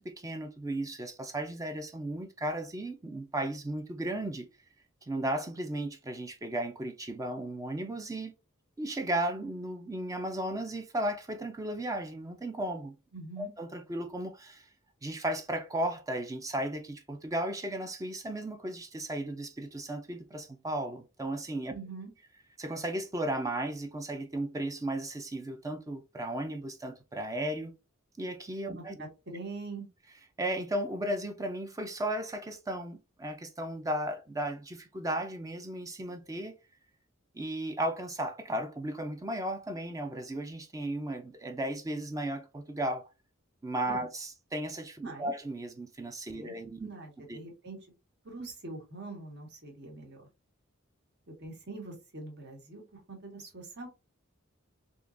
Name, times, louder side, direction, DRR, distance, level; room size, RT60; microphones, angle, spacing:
voice 1, 0.0-4.5 5.1-8.3 8.8-13.0 13.4-14.7 15.0-21.8 22.6-27.7 28.2-29.0 30.4-36.5 37.3-43.1 43.6-46.9 47.3-47.4 48.4-48.5, right 1 dB, 15° right, 0.4 m, -35 dB
voice 2, 13.1-13.5 21.7-22.1 28.8-29.9 43.9-44.0 45.0-45.3 46.3-46.5 46.8-47.8 48.2-50.3 51.3-53.9, right 3 dB, 55° right, 1.3 m, -44 dB
3.7 x 2.9 x 2.5 m
head